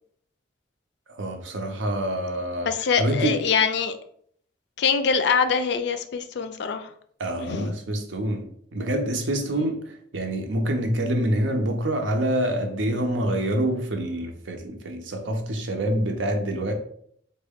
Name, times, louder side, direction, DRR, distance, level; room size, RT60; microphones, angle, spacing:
voice 1, 1.1-2.7 3.0-3.4 7.2-16.7, right 1 dB, 80° right, 0.6 m, -26 dB
voice 2, 2.6-4.0 4.8-6.9 7.4-7.8, left 6 dB, 65° left, 0.3 m, -24 dB
3.6 x 2.1 x 3.5 m
head